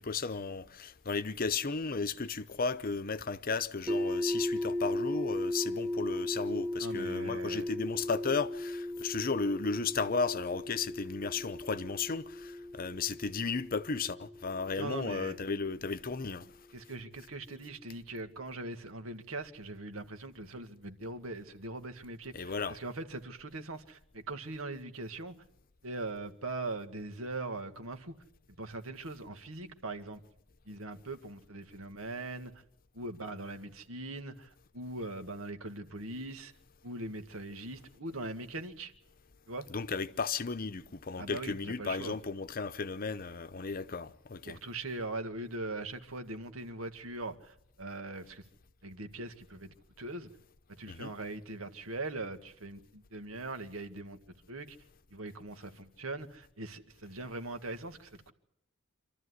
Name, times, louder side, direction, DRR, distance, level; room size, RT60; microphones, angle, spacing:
voice 1, 0.0-16.5 22.3-22.8 39.7-44.6 50.9-51.1, left 4 dB, 45° left, 0.8 m, -34 dB
sound 1, 3.9-15.8, left 1 dB, ahead, 1.7 m, -36 dB
voice 2, 6.8-7.7 14.7-15.4 16.7-25.4 25.8-28.1 28.6-30.2 30.7-32.5 32.9-36.5 36.8-38.9 39.5-39.7 41.2-42.2 44.5-48.4 48.8-50.3 50.7-54.2 54.5-54.8 55.1-58.3, right 2 dB, 85° right, 1.9 m, -41 dB
27.0 x 13.5 x 9.7 m
head